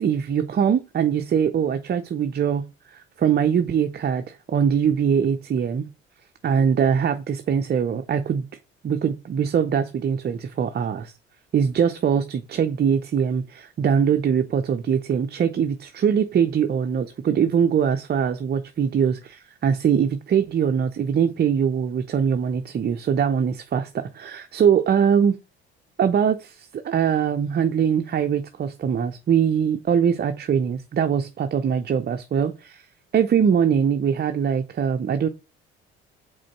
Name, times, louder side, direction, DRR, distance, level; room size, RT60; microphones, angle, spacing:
voice 1, 0.0-2.6 2.9-5.9 6.4-8.5 8.8-11.1 11.5-25.4 26.0-32.8 33.1-35.3, right 7 dB, 30° right, 0.6 m, -22 dB
5.0 x 3.8 x 5.8 m
hypercardioid pair, 55°, 31 cm